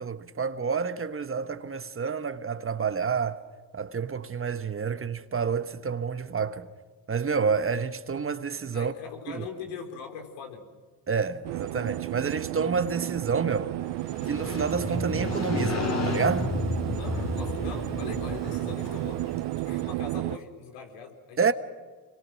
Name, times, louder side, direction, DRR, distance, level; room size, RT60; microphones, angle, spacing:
voice 1, 0.0-3.4 3.7-6.7 7.1-8.9 9.3-9.5 11.1-13.7 14.3-16.5 21.4-21.5, right 5 dB, 30° right, 1.2 m, -29 dB
voice 2, 8.7-10.7 17.0-19.2 19.5-21.5, left 6 dB, 85° left, 4.2 m, -41 dB
sound 1, 11.4-20.4, right 18 dB, 65° right, 0.6 m, -33 dB
Motorcycle, 13.9-19.9, left 2 dB, 35° left, 3.4 m, -32 dB
25.5 x 22.0 x 6.3 m
supercardioid pair, 85°, 43 cm